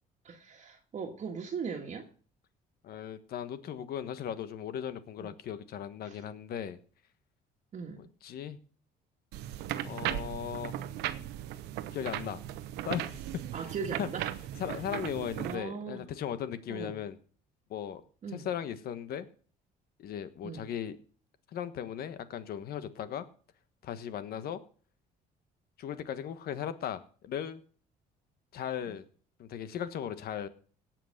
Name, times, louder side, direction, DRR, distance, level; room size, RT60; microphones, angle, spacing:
voice 1, 0.2-2.1 5.2-5.3 6.0-6.2 7.7-8.1 13.5-14.3 15.4-16.0 16.7-17.0 18.2-18.5 20.4-20.7 28.9-29.0, right 5 dB, 45° right, 1.7 m, -39 dB
voice 2, 2.8-6.8 8.0-8.6 9.8-10.8 11.9-12.4 12.8-13.2 14.0-14.1 14.6-17.2 17.7-18.0 18.3-19.3 20.0-21.0 21.5-23.3 23.8-24.6 25.8-27.6 28.5-29.1 29.4-30.5, left 9 dB, 65° left, 1.4 m, -37 dB
sound 1, 9.3-15.5, right 12 dB, 85° right, 1.0 m, -37 dB
17.5 x 6.1 x 6.6 m
cardioid pair, 110°, 17 cm